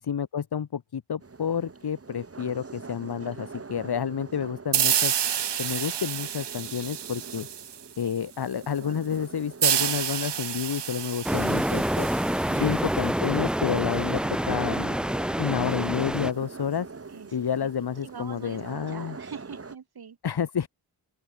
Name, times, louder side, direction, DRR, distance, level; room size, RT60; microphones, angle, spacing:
voice 1, 0.1-5.2 5.6-7.5 8.0-12.1 12.6-14.2 14.5-15.0 15.4-16.9 17.3-19.2 20.2-20.7, left 7 dB, 65° left, 2.5 m, -30 dB
sound 1, 1.2-19.8, right 4 dB, 35° right, 5.3 m, -45 dB
sound 2, 4.7-8.1 9.6-13.1, right 9 dB, 75° right, 1.4 m, -29 dB
sound 3, 11.2-16.3, equal, ahead, 0.7 m, -27 dB
voice 2, 12.5-12.8 17.1-17.7 18.0-18.6 18.9-20.2, right 7 dB, 60° right, 4.0 m, -44 dB
open air
wide cardioid pair, 160°, 42 cm